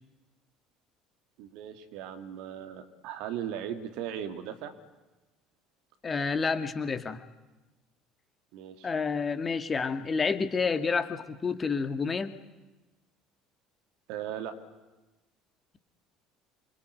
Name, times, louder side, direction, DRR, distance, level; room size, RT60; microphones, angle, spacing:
voice 1, 1.4-4.7 8.5-8.9 14.1-14.5, right 9 dB, 60° right, 7 dB, 2.3 m, -38 dB
voice 2, 6.0-7.2 8.8-12.3, left 5 dB, 25° left, 10 dB, 2.0 m, -29 dB
27.5 x 23.0 x 9.2 m, 1.1 s
figure-of-eight pair, 60°, 0 cm